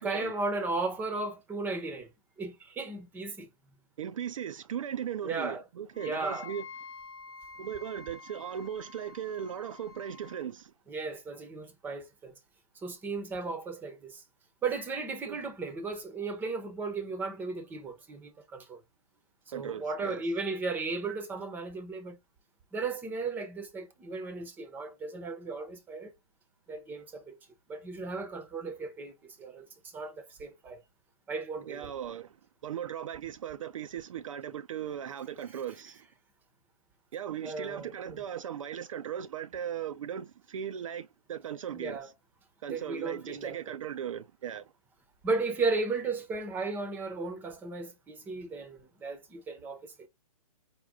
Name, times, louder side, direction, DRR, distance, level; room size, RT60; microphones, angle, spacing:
voice 1, 0.0-2.1 2.4-3.5 5.2-5.6 5.9-6.5 10.9-12.4 12.7-14.2 14.6-18.8 19.5-22.2 22.7-26.1 26.7-27.4 27.7-30.8 31.3-31.9 35.5-35.6 37.4-38.2 41.7-42.1 42.7-43.6 45.2-50.1, right 3 dB, 10° right, 0.7 m, -35 dB
voice 2, 4.0-6.6 7.6-10.7 15.3-15.4 19.5-20.2 31.6-32.4 32.6-36.1 37.1-42.0 42.6-44.7, right 9 dB, 55° right, 0.4 m, -38 dB
Wind instrument woodwind instrument, 5.9-10.5, left 5 dB, 15° left, 1.0 m, -48 dB
5.1 x 2.2 x 3.5 m
hypercardioid pair, 145°, 19 cm